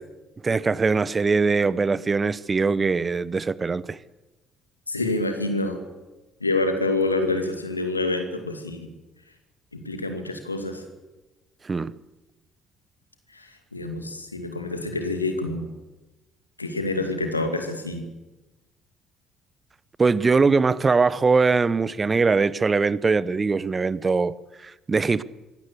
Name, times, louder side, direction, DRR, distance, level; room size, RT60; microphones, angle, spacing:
voice 1, 0.4-4.0 11.6-11.9 20.0-25.2, right 4 dB, 30° right, 0.8 m, -22 dB
voice 2, 4.9-5.8 6.4-8.9 9.7-10.8 13.3-15.7 16.6-18.1, left 2 dB, 85° left, 2.3 m, -27 dB
24.0 x 16.5 x 8.3 m
figure-of-eight pair, 50°, 0 cm